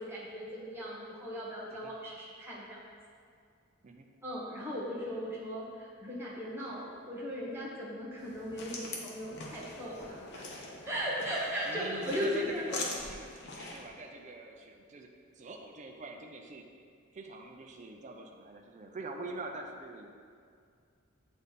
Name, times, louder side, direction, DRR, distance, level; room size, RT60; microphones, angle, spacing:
voice 1, 0.0-2.8 4.2-12.8, equal, 10° right, -6 dB, 1.3 m, -37 dB
sound 1, 8.2-13.9, left 2 dB, 55° left, 0.9 m, -43 dB
voice 2, 11.7-15.1 15.3-16.7 17.1-20.1, right 2 dB, 35° right, 2 dB, 0.5 m, -44 dB
8.3 x 3.4 x 4.1 m, 2.2 s
head